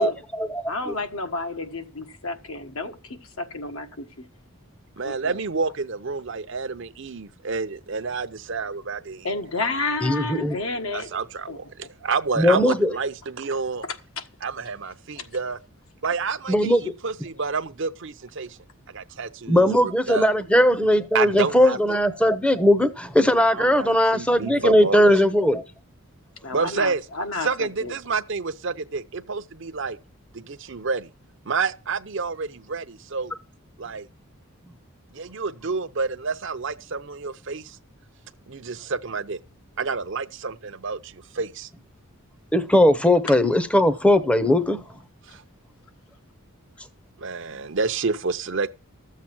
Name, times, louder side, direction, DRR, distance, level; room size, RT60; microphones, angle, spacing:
voice 1, 0.0-0.9 10.0-10.6 12.4-12.9 16.5-16.9 19.5-25.6 42.5-44.8, left 1 dB, 5° left, 0.7 m, -19 dB
voice 2, 0.7-4.2 5.0-5.4 9.2-11.1 11.5-11.6 13.8-14.3 15.2-15.3 26.4-27.9 43.3-43.4, left 3 dB, 70° left, 1.5 m, -31 dB
voice 3, 5.0-9.3 10.9-13.8 14.4-15.6 16.0-18.6 18.9-19.7 20.1-20.3 21.1-21.8 23.3-25.1 26.5-27.0 27.4-30.0 30.3-31.1 31.5-33.3 33.8-34.1 35.1-37.8 38.5-39.4 39.8-41.7 45.3-45.4 47.2-48.7, right 4 dB, 55° right, 0.7 m, -29 dB
13.5 x 7.5 x 6.0 m
head